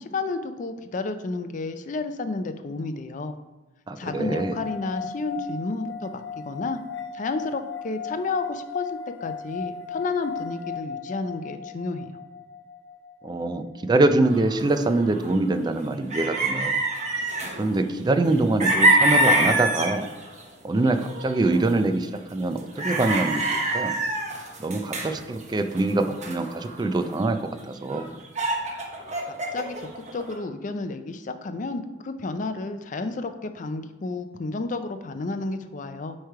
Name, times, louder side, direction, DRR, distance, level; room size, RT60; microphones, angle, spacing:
voice 1, 0.0-3.3 4.0-6.8 7.1-12.2 29.2-36.2, left 3 dB, 45° left, 9 dB, 0.4 m, -31 dB
voice 2, 3.9-4.6 13.2-16.8 17.6-20.1 20.6-23.9 24.6-28.1, right 2 dB, 25° right, 9 dB, 0.4 m, -24 dB
sound 1, 4.0-15.4, left 6 dB, 75° left, 0.9 m, -37 dB
sound 2, 14.2-15.4 15.8-15.9 16.1-17.8 18.3-20.5 20.8-21.9 22.5-27.3 27.6-27.7 27.9-30.3, right 1 dB, 40° right, 1.0 m, -26 dB
8.1 x 3.3 x 4.6 m, 1.1 s
head